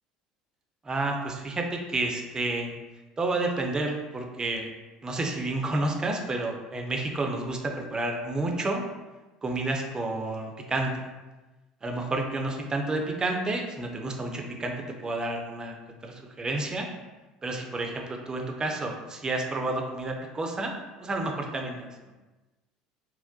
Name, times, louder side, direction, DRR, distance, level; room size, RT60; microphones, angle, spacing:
voice 1, 0.8-2.7 3.2-4.7 5.0-8.8 9.4-11.1 11.8-14.7 15.0-15.8 16.0-16.9 17.4-17.9 18.3-20.7 21.0-21.9, right 2 dB, 25° right, 2 dB, 0.6 m, -30 dB
4.2 x 2.1 x 2.7 m, 1.2 s
hypercardioid pair, 70°, 3 cm